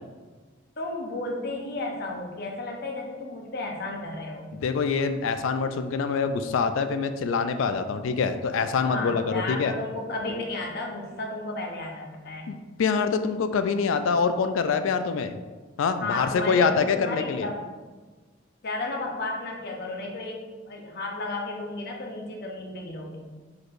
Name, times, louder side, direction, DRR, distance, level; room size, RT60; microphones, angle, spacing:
voice 1, 0.8-4.5 8.9-12.5 16.0-17.6 18.6-23.2, left 2 dB, 55° left, 1 dB, 0.8 m, -33 dB
voice 2, 4.6-9.7 12.5-15.3 15.8-17.5, left 5 dB, 80° left, 9 dB, 0.3 m, -25 dB
4.6 x 4.5 x 2.5 m, 1.3 s
head